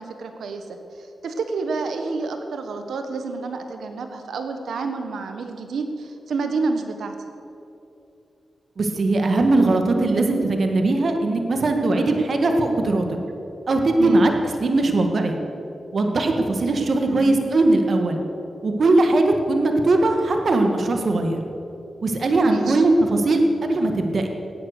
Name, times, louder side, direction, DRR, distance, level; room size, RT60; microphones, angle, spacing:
voice 1, 0.0-7.2 14.0-14.3 17.0-17.4 22.4-22.8, right 4 dB, 80° right, 6 dB, 1.3 m, -29 dB
voice 2, 8.8-13.0 13.7-14.3 14.6-15.4 15.9-18.2 18.6-21.4 22.0-24.3, right 2 dB, 65° right, 4 dB, 1.7 m, -20 dB
17.0 x 9.4 x 6.6 m, 2.7 s
supercardioid pair, 40°, 0 cm